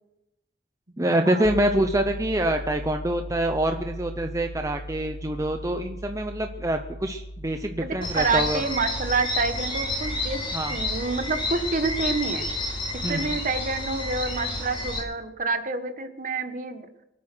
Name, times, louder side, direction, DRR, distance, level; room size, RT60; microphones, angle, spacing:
voice 1, 1.0-8.6 10.5-10.7 13.0-13.4, right 1 dB, 15° right, 5 dB, 0.7 m, -26 dB
sound 1, 1.4-12.5, right 1 dB, 75° left, 2.3 m, -39 dB
voice 2, 7.8-10.4 10.7-12.5 12.9-16.9, right 4 dB, 45° right, 8 dB, 1.4 m, -28 dB
sound 2, 8.0-15.0, left 2 dB, 25° left, 4.3 m, -30 dB
24.0 x 8.8 x 6.2 m, 0.90 s
head